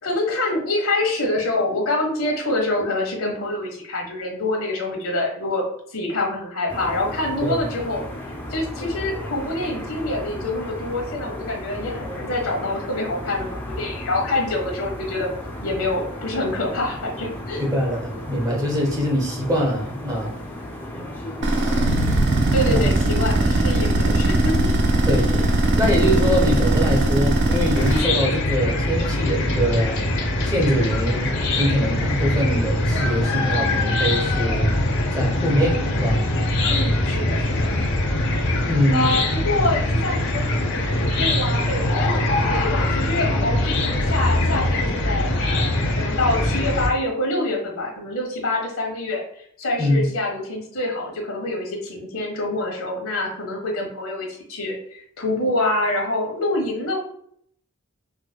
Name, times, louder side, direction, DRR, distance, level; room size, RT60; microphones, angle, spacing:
voice 1, 0.0-5.7 5.9-8.1 8.5-15.3 15.6-17.6 22.5-24.7 36.6-37.7 38.9-45.7 46.0-49.2 49.6-57.0, left 2 dB, 85° left, 1 dB, 1.1 m, -26 dB
sound 1, 6.7-22.7, left 1 dB, 10° left, 0.4 m, -34 dB
voice 2, 17.6-20.3 22.6-22.8 25.1-25.5 25.8-30.0 30.4-31.3 31.6-34.7 35.1-36.2 38.6-39.2 49.8-50.1, equal, 15° right, 0 dB, 0.8 m, -23 dB
sound 2, 21.4-28.0, right 1 dB, 55° right, 0.5 m, -19 dB
Chicken rooster / Cricket, 27.8-46.9, left 1 dB, 60° left, 0.7 m, -22 dB
4.7 x 2.2 x 2.2 m, 0.67 s
head